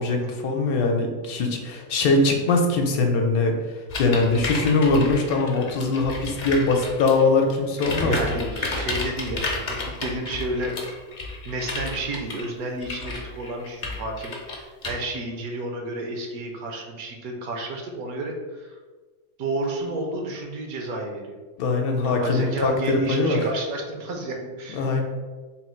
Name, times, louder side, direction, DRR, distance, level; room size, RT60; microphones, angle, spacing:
voice 1, 0.0-3.6 4.0-8.1 21.6-23.4 24.7-25.0, left 3 dB, 80° left, 3 dB, 1.1 m, -22 dB
sound 1, 3.9-7.3 7.7-14.9, left 2 dB, 45° left, 0.6 m, -32 dB
voice 2, 8.0-10.8 11.4-18.8 19.4-21.4 22.0-25.0, right 1 dB, 75° right, 2 dB, 1.2 m, -31 dB
3.8 x 2.3 x 4.3 m, 1.4 s
omnidirectional pair, 1.6 m